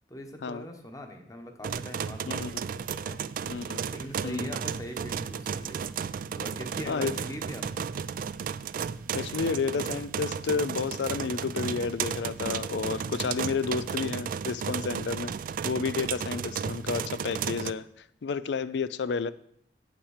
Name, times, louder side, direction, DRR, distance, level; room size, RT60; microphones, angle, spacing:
voice 1, 0.1-3.3 3.9-5.8 6.3-7.9, equal, 20° left, 4 dB, 1.1 m, -41 dB
sound 1, 1.6-17.7, right 7 dB, 50° right, 0.3 m, -34 dB
voice 2, 3.4-3.8 4.2-4.6 6.9-7.1 9.1-15.3 15.6-17.9 18.2-19.3, left 5 dB, 75° left, 16 dB, 0.4 m, -31 dB
8.7 x 5.9 x 6.5 m, 0.70 s
head